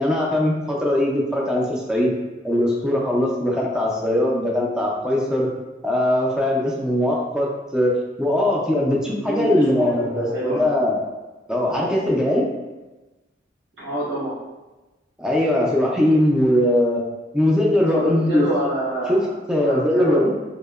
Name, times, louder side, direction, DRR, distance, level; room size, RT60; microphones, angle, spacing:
voice 1, 0.0-2.1 2.4-5.5 5.8-7.9 8.2-11.0 11.5-12.5 15.2-17.0 17.3-18.4 19.1-19.2 19.5-20.3, left 1 dB, 5° right, -3 dB, 0.3 m, -20 dB
voice 2, 9.1-10.7 13.8-14.3 17.9-19.3 19.6-20.3, right 1 dB, 70° right, -11 dB, 1.1 m, -27 dB
2.7 x 2.0 x 2.3 m, 1.1 s
head